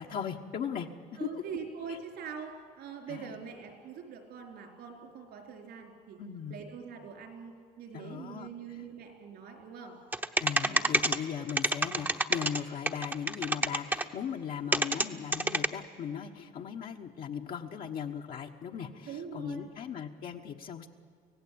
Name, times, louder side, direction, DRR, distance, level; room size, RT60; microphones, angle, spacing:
voice 1, 0.0-1.6 1.9-2.0 3.1-3.3 6.2-6.5 7.9-8.5 10.4-20.9, left 8 dB, 60° left, 1 dB, 1.3 m, -38 dB
voice 2, 1.2-6.2 6.5-10.0 10.5-11.0 19.1-19.7, right 6 dB, 75° right, 4 dB, 4.7 m, -43 dB
sound 1, 10.1-11.2 11.5-12.6 12.9-14.0 14.7-15.1 15.3-15.7, right 2 dB, 10° right, 1.0 m, -27 dB
25.5 x 17.0 x 8.8 m, 2.2 s
cardioid pair, 110°, 17 cm